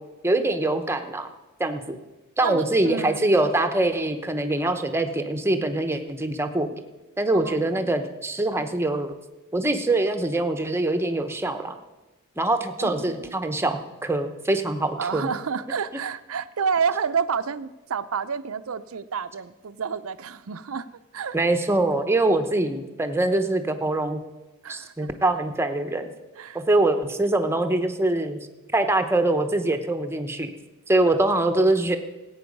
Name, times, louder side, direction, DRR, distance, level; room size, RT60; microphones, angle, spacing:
voice 1, 0.2-1.3 1.6-2.0 2.4-6.7 7.2-9.1 9.5-11.8 12.4-15.3 21.3-24.2 24.7-26.1 26.5-28.4 28.7-30.5 30.9-32.0, right 2 dB, 10° right, 7 dB, 0.9 m, -23 dB
voice 2, 2.4-3.3 7.3-8.0 12.8-13.4 15.0-20.9 21.1-21.4 24.6-25.1 26.4-26.6, right 6 dB, 65° right, 13 dB, 0.6 m, -29 dB
17.5 x 8.8 x 5.4 m, 1.1 s
head